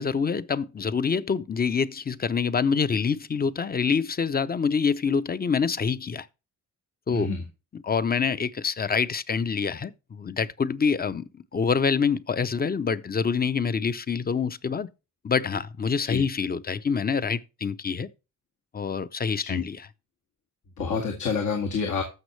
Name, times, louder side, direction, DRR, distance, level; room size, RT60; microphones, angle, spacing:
voice 1, 0.0-6.3 7.1-7.3 7.7-14.9 15.2-18.1 18.7-19.9, left 5 dB, 30° left, 0.7 m, -26 dB
voice 2, 7.1-7.4 16.1-16.2 19.4-19.6 20.8-22.0, left 5 dB, 80° left, 2.3 m, -28 dB
14.5 x 6.4 x 3.2 m
cardioid pair, 120°, 30 cm